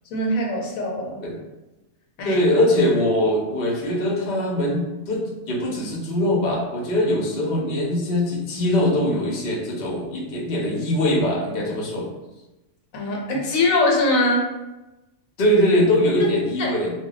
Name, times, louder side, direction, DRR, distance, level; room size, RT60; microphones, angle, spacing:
voice 1, 0.1-1.2 2.2-2.4 12.9-14.5 16.2-16.7, left 2 dB, 80° left, 0 dB, 1.1 m, -22 dB
voice 2, 2.2-12.1 15.4-16.9, left 1 dB, 55° left, -2 dB, 0.8 m, -22 dB
2.2 x 2.2 x 3.7 m, 1.0 s
omnidirectional pair, 1.4 m